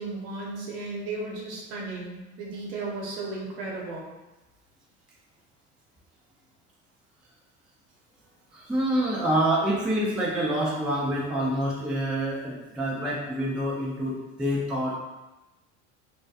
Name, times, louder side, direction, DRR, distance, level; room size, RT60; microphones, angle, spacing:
voice 1, 0.0-4.1, right 3 dB, 70° right, -3 dB, 0.8 m, -35 dB
voice 2, 8.5-14.9, right 1 dB, 5° right, -5 dB, 0.4 m, -27 dB
2.2 x 2.1 x 2.7 m, 1.0 s
hypercardioid pair, 85°, 36 cm